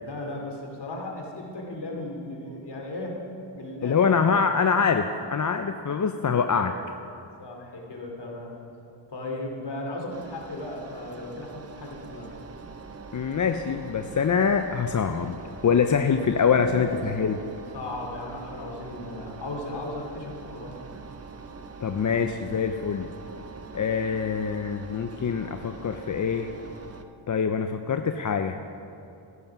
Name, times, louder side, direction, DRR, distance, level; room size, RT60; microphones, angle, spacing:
voice 1, 0.0-3.2 3.5-4.3 7.4-8.6 9.1-12.3 16.2-17.0 17.7-21.0, left 2 dB, 55° left, 1 dB, 3.0 m, -36 dB
voice 2, 3.8-6.7 13.1-15.4 15.6-17.4 21.8-23.1 23.7-26.5 27.3-28.6, left 6 dB, 40° left, 7 dB, 0.6 m, -24 dB
Engine, 10.1-27.0, right 4 dB, 30° right, 0.9 m, -43 dB
14.0 x 11.0 x 6.0 m, 2.9 s
cardioid pair, 80°, 48 cm